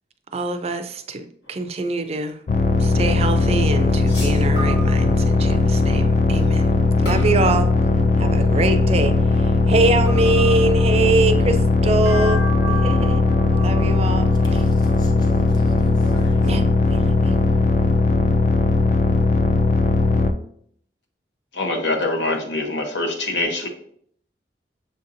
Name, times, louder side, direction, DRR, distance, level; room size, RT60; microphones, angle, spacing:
voice 1, 0.3-2.4 2.8-6.7 7.0-7.7 8.2-13.2 13.6-14.6 16.4-17.5, right 2 dB, 35° right, 8 dB, 0.3 m, -24 dB
sound 1, 1.5-1.7 4.1-5.5 7.1-8.3 10.1-11.3 12.1-16.6, right 1 dB, 70° left, 1.2 m, -35 dB
sound 2, 2.5-20.3, left 3 dB, 45° left, 0.3 m, -18 dB
voice 2, 14.5-16.4, right 2 dB, 25° left, 2 dB, 0.7 m, -38 dB
voice 3, 21.5-23.7, left 2 dB, 90° left, 3 dB, 0.8 m, -24 dB
6.6 x 2.7 x 2.6 m, 0.64 s
head